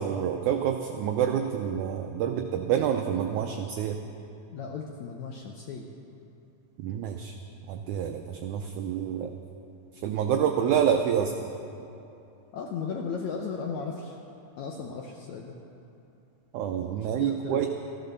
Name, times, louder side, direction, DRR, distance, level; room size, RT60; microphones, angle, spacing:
voice 1, 0.0-4.0 6.8-7.3 7.7-9.3 10.0-11.3 16.5-17.7, right 9 dB, 85° right, 5 dB, 1.7 m, -27 dB
voice 2, 4.5-5.9 12.5-14.2 14.6-15.6 17.0-17.6, left 5 dB, 75° left, 1 dB, 1.7 m, -36 dB
14.5 x 11.5 x 6.7 m, 2.8 s
omnidirectional pair, 4.2 m